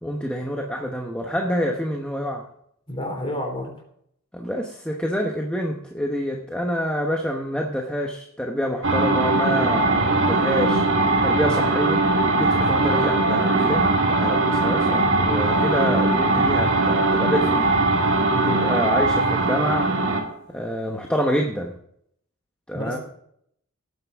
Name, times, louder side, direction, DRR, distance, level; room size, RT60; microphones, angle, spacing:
voice 1, 0.0-2.5 4.3-10.8 11.2-12.0 12.4-17.6 18.4-19.9 20.5-21.7 22.7-23.0, equal, 5° left, 1 dB, 1.0 m, -27 dB
voice 2, 2.9-3.7 18.3-18.6 22.7-23.0, left 1 dB, 25° left, 1 dB, 3.8 m, -30 dB
sound 1, 8.8-20.3, right 2 dB, 55° right, 2.0 m, -20 dB
18.0 x 9.3 x 3.6 m, 0.70 s
head